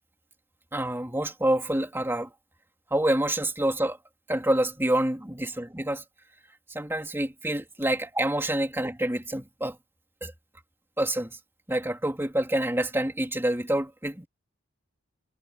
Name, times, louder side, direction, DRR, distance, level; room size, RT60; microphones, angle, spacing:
voice 1, 0.7-2.3 2.9-4.0 4.3-6.0 6.7-9.8 10.2-10.3 11.0-11.4 11.7-14.3, right 1 dB, 10° right, 3.2 m, -27 dB
head